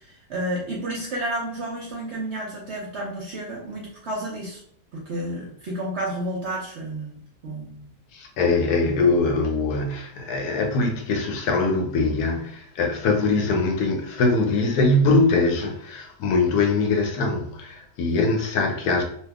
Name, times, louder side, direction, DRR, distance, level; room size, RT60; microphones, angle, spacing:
voice 1, 0.0-4.6 4.9-7.9 18.1-18.2, right 1 dB, 60° right, 0.7 m, -31 dB
voice 2, 8.1-19.0, left 3 dB, 75° left, 1.1 m, -22 dB
2.9 x 2.4 x 3.4 m
omnidirectional pair, 1.7 m